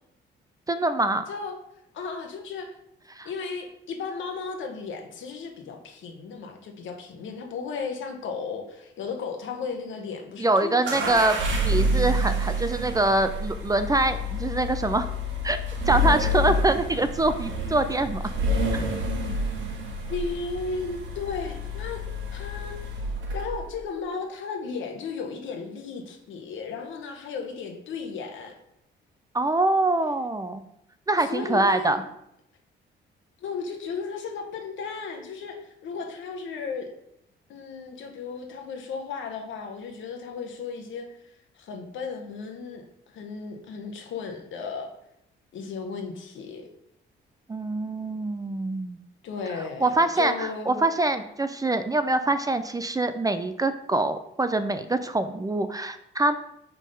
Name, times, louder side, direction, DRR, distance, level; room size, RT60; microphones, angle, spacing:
voice 1, 0.7-1.3 3.2-3.3 10.4-11.4 11.6-15.1 15.4-15.6 15.9-18.2 18.7-18.8 29.3-30.6 31.1-32.0 47.5-49.0 49.8-56.4, right 2 dB, 20° right, 10 dB, 0.4 m, -24 dB
voice 2, 1.9-2.7 3.2-11.3 20.1-22.0 22.3-22.9 23.3-28.5 31.2-32.0 33.4-36.9 37.5-41.1 41.5-42.8 43.1-44.9 45.5-46.7 49.2-50.9, left 5 dB, 75° left, 3 dB, 1.1 m, -35 dB
sound 1, 10.9-23.7, equal, 70° right, 1.3 m, -28 dB
5.2 x 3.7 x 5.4 m, 0.78 s
cardioid pair, 90°, 20 cm